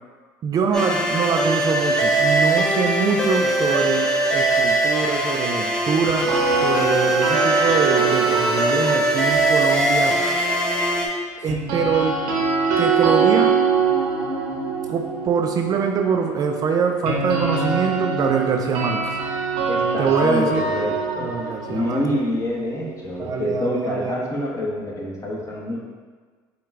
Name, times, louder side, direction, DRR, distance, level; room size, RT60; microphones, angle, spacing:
voice 1, 0.4-6.3 6.6-10.2 11.4-12.2 12.8-13.5 14.9-19.2 20.0-20.7 21.2-22.2 23.2-24.3, right 6 dB, 45° right, 3 dB, 0.4 m, -24 dB
sound 1, 0.7-11.1, right 1 dB, 5° left, 0.8 m, -21 dB
sound 2, 6.1-10.2 11.5-23.4, right 5 dB, 75° right, 0.9 m, -24 dB
voice 2, 19.7-21.3 21.7-25.8, left 1 dB, 35° left, -3 dB, 1.1 m, -26 dB
5.0 x 2.3 x 3.5 m, 1.5 s
supercardioid pair, 80°, 9 cm